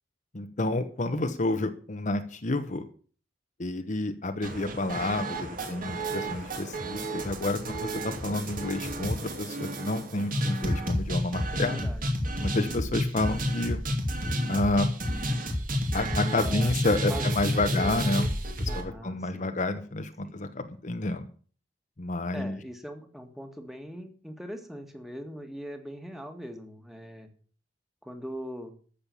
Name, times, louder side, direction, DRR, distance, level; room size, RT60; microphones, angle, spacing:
voice 1, 0.3-2.8 3.6-11.9 12.4-13.8 14.5-14.9 15.9-18.3 18.7-21.3 22.0-22.6, left 2 dB, 45° left, 8 dB, 1.0 m, -29 dB
sound 1, 4.4-18.8, equal, 50° right, 2.7 m, -30 dB
voice 2, 11.5-12.0 16.3-16.7 17.1-18.3 18.7-19.6 20.2-20.4 22.3-27.3 28.0-28.8, equal, ahead, 5 dB, 1.9 m, -41 dB
14.0 x 6.7 x 7.0 m, 0.42 s
head